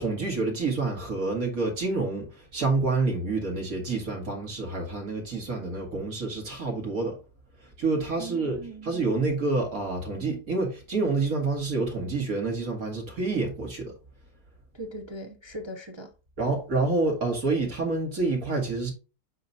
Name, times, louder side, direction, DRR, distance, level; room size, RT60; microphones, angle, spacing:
voice 1, 0.0-7.2 7.6-13.9 16.4-18.9, right 3 dB, 60° right, 2.5 m, -28 dB
voice 2, 8.2-8.9 14.7-16.1, right 1 dB, 30° right, 0.4 m, -39 dB
7.8 x 5.1 x 2.7 m
omnidirectional pair, 1.7 m